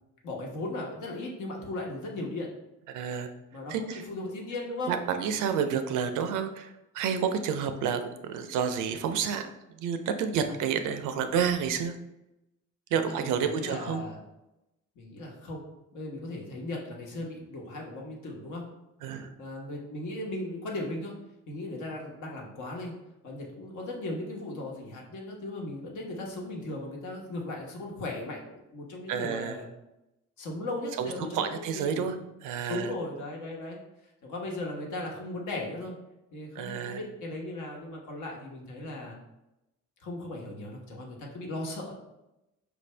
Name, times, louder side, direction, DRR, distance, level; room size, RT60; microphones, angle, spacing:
voice 1, 0.2-2.5 3.5-4.9 13.1-14.2 15.0-15.6 15.9-18.7 19.4-21.1 21.5-22.9 23.2-29.7 30.4-32.2 32.7-33.8 34.2-35.9 36.3-39.2 40.0-41.9, left 2 dB, 75° left, -1 dB, 1.2 m, -37 dB
voice 2, 2.9-3.3 3.7-4.0 4.9-9.5 9.7-11.9 12.9-14.0 19.0-19.3 29.1-29.6 31.0-32.2 32.4-32.9 36.6-37.0, right 7 dB, 90° right, 8 dB, 0.5 m, -30 dB
4.8 x 2.6 x 3.2 m, 0.93 s
cardioid pair, 90°, 30 cm